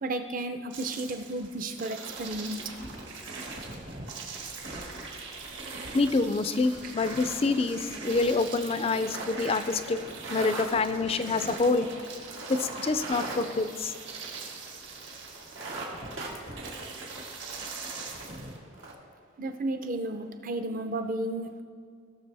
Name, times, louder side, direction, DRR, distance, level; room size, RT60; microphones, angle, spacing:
voice 1, 0.0-2.6 19.4-21.6, right 2 dB, 45° right, 0.6 m, -33 dB
sound 1, 0.7-18.6, right 3 dB, 65° right, 1.6 m, -41 dB
sound 2, 2.2-2.8 3.1-3.4 3.8-14.5 14.8-14.9 15.3-17.8 18.2-18.3 18.6-18.9, right 2 dB, 90° right, 1.8 m, -42 dB
voice 2, 5.9-10.0 10.3-11.9 12.5-13.9, left 3 dB, 30° left, 0.4 m, -27 dB
17.0 x 6.6 x 3.4 m
head